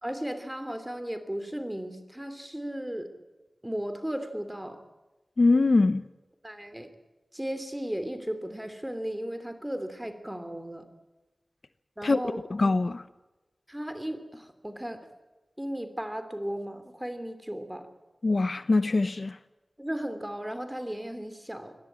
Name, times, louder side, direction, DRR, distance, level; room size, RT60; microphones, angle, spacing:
voice 1, 0.0-3.1 3.6-4.8 6.4-6.9 7.3-10.9 12.0-12.4 13.7-15.1 15.6-17.9 19.8-21.8, equal, 10° right, 2.9 m, -35 dB
voice 2, 5.4-6.0 12.0-12.2 12.5-13.0 18.2-19.4, left 3 dB, 60° left, 0.8 m, -23 dB
24.5 x 17.5 x 8.9 m
wide cardioid pair, 80°, 0 cm